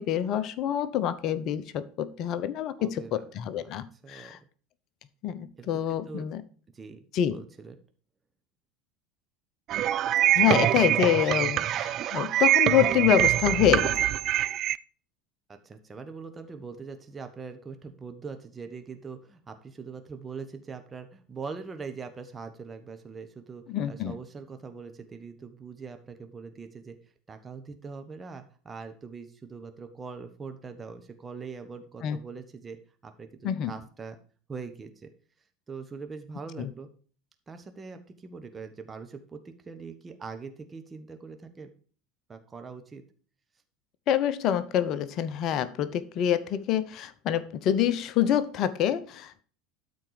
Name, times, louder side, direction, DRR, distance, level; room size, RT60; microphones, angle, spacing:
voice 1, 0.0-4.4 5.2-6.4 7.1-7.4 10.3-14.1 23.7-24.1 32.0-32.2 33.4-33.7 36.6-36.7 44.1-49.4, left 10 dB, 45° left, 0.8 m, -26 dB
voice 2, 2.8-3.2 3.6-3.7 4.0-4.3 5.6-6.3 6.7-7.0 7.3-7.7 10.3-10.7 11.5-11.8 15.5-27.0 27.3-32.8 33.0-34.2 34.5-35.1 35.7-36.9 37.5-41.7 42.3-43.0, right 5 dB, 20° right, 1.2 m, -42 dB
sound 1, 9.7-14.8, right 13 dB, 45° right, 0.4 m, -24 dB
12.5 x 4.4 x 4.9 m
figure-of-eight pair, 75°, 0 cm